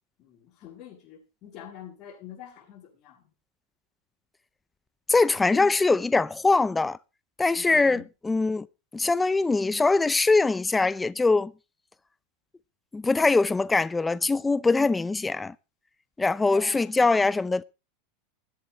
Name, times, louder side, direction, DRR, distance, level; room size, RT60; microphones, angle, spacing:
voice 1, 0.2-3.3 5.5-5.7 7.6-8.1 16.5-16.9, left 9 dB, 45° left, 7.2 m, -45 dB
voice 2, 5.1-7.0 7.4-8.7 8.9-11.5 12.9-15.5 16.2-17.6, left 3 dB, 10° left, 0.6 m, -22 dB
20.5 x 11.0 x 3.0 m
supercardioid pair, 125°, 0 cm